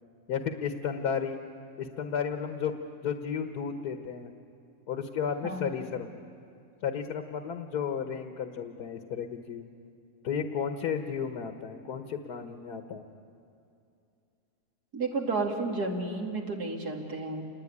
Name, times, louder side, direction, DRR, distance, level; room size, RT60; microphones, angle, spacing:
voice 1, 0.3-1.4 1.8-2.7 3.0-4.3 4.9-6.1 6.8-9.7 10.2-13.1, left 7 dB, 75° left, 7 dB, 1.7 m, -33 dB
voice 2, 5.4-5.8 14.9-17.4, right 3 dB, 80° right, 1 dB, 3.2 m, -32 dB
27.5 x 19.5 x 9.7 m, 2.6 s
omnidirectional pair, 1.7 m